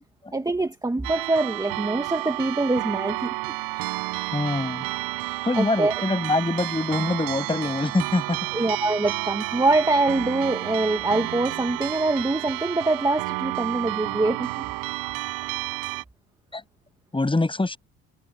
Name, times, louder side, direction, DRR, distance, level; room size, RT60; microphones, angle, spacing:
voice 1, 0.3-3.9 5.2-5.9 8.5-14.7, right 2 dB, 10° right, 1.8 m, -24 dB
sound 1, 1.0-16.0, right 24 dB, 85° right, 7.6 m, -31 dB
voice 2, 4.3-4.9 5.4-8.4 16.5-16.6 17.1-17.8, left 2 dB, 15° left, 7.8 m, -24 dB
supercardioid pair, 90°, 34 cm